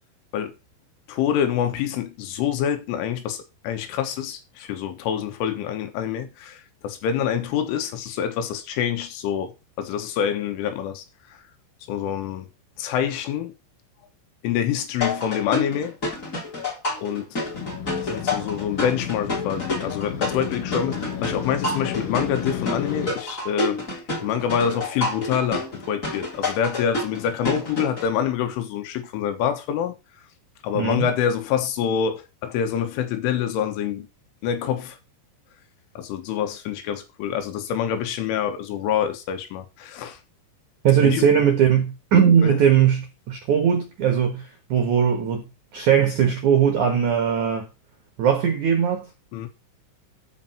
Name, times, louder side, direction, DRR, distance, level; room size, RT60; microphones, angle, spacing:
voice 1, 1.1-11.4 11.9-12.5 12.8-13.5 14.4-16.0 17.0-17.4 18.0-23.8 24.2-30.0 30.6-34.1 34.4-35.0 36.0-40.2 41.0-41.3 42.4-42.6 49.3-49.5, left 9 dB, 75° left, 3.6 m, -26 dB
sound 1, 15.0-28.1, left 2 dB, 20° left, 2.9 m, -29 dB
Motorcycle, 17.5-23.1, left 7 dB, 50° left, 3.2 m, -32 dB
voice 2, 30.7-31.1 40.8-45.4 45.7-47.7 48.2-49.1, right 8 dB, 70° right, 1.8 m, -19 dB
13.5 x 5.4 x 4.4 m
omnidirectional pair, 5.9 m